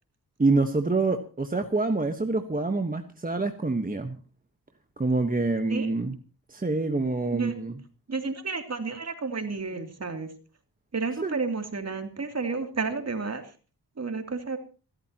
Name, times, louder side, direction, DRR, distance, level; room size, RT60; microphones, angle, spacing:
voice 1, 0.4-4.2 5.0-6.2 6.5-7.7 11.2-11.4, right 3 dB, 20° right, 5 dB, 1.3 m, -26 dB
voice 2, 8.1-10.3 10.9-13.5 14.0-14.6, right 4 dB, 40° right, 5 dB, 3.0 m, -31 dB
27.0 x 13.5 x 3.0 m, 0.36 s
wide cardioid pair, 105°, 41 cm